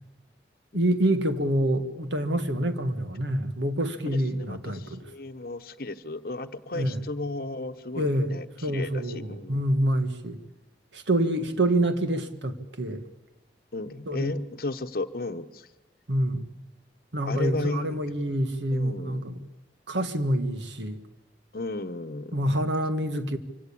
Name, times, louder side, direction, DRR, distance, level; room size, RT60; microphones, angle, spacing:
voice 1, 0.7-5.1 6.7-7.0 7.9-8.4 8.6-10.4 10.9-13.0 14.1-14.3 16.1-16.5 17.1-19.4 19.9-21.0 22.3-23.4, right 1 dB, 80° right, 1.6 m, -27 dB
voice 2, 4.1-9.6 13.7-15.7 17.3-18.0 18.7-19.2 21.5-22.4, left 2 dB, 55° left, 1.0 m, -34 dB
24.5 x 17.0 x 8.6 m
head